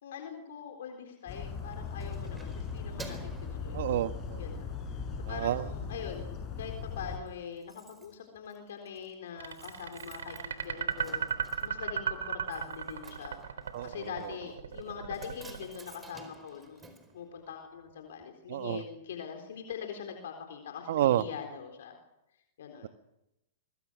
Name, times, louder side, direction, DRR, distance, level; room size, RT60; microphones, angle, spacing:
voice 1, 0.0-3.9 4.4-11.3 11.6-13.4 13.8-22.0 22.6-22.9, left 7 dB, 70° left, 4 dB, 4.0 m, -43 dB
sound 1, 1.3-7.2, left 5 dB, 30° left, 7.3 m, -39 dB
Keys jangling, 1.4-4.5 4.9-5.2 5.5-6.2 6.5-6.6 6.8-6.9 7.1-17.9 18.2-18.3, right 3 dB, 15° right, 4.6 m, -53 dB
voice 2, 3.7-4.4 5.2-5.7 13.7-14.3 18.5-18.8 20.9-21.2, right 12 dB, 65° right, 11 dB, 1.4 m, -30 dB
sound 2, 9.4-16.5, right 7 dB, 80° right, 3.7 m, -35 dB
24.5 x 24.5 x 6.4 m, 0.89 s
hypercardioid pair, 115°, 0 cm